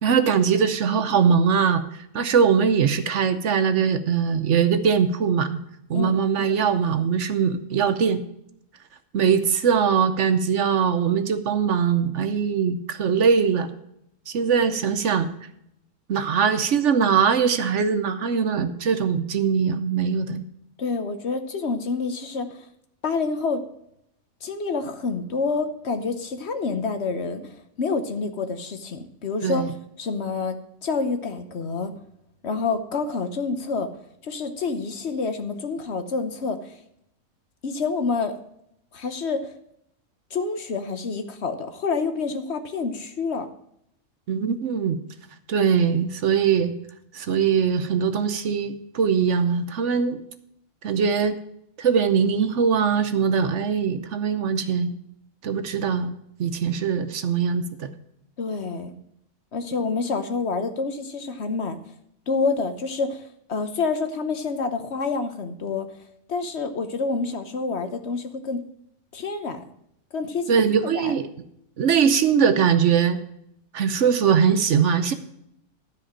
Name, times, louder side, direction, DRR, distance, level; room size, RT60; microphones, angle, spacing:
voice 1, 0.0-1.8 2.1-5.6 5.9-8.2 9.1-13.7 14.3-15.3 16.1-20.4 29.4-29.7 44.3-45.0 45.5-46.7 47.1-50.2 50.8-51.4 51.8-54.9 55.4-56.1 56.4-57.9 70.5-71.3 71.8-73.2 73.7-75.1, right 6 dB, 60° right, 10 dB, 1.0 m, -21 dB
voice 2, 20.8-22.7 23.0-23.6 24.4-27.5 27.8-29.6 30.0-31.9 32.4-33.9 34.2-36.8 37.6-38.3 38.9-39.5 40.3-43.5 58.4-58.9 59.5-61.8 62.3-63.2 63.5-65.9 66.3-68.6 69.1-69.6 70.1-70.6 70.9-71.2, left 4 dB, 55° left, 9 dB, 1.1 m, -27 dB
12.5 x 5.0 x 7.3 m, 0.75 s
omnidirectional pair, 1.5 m